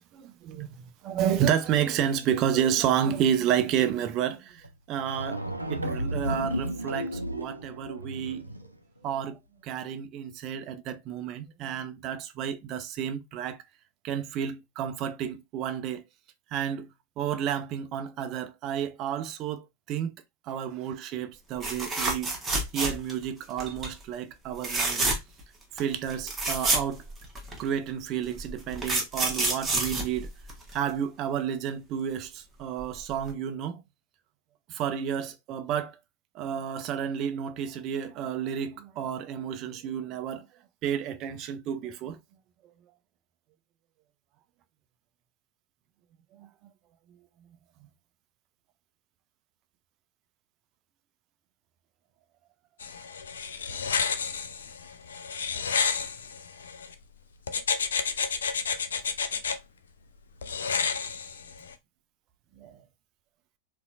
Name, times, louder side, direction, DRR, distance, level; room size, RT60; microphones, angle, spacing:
voice 1, 0.1-5.4 5.7-8.4 9.0-13.6 14.0-16.0 16.5-16.9 17.2-20.1 20.5-22.3 22.7-25.1 25.8-27.1 27.6-30.3 30.7-33.8 34.7-36.0 36.3-40.5 40.8-42.2 46.4-46.5 62.6-62.8, right 9 dB, 35° right, 0.4 m, -31 dB
sound 1, 4.6-4.7 5.0-8.7, equal, 85° right, 0.5 m, -33 dB
sound 2, 21.6-23.2 23.6-23.9 24.6-25.4 25.8-25.9 26.1-27.6 28.4-30.9 32.8-33.0 33.3-33.4, right 2 dB, 15° right, 1.0 m, -28 dB
sound 3, 52.8-56.9 57.5-59.6 60.4-61.7, left 6 dB, 65° left, 0.4 m, -30 dB
4.1 x 2.5 x 2.4 m
figure-of-eight pair, 90°, 0 cm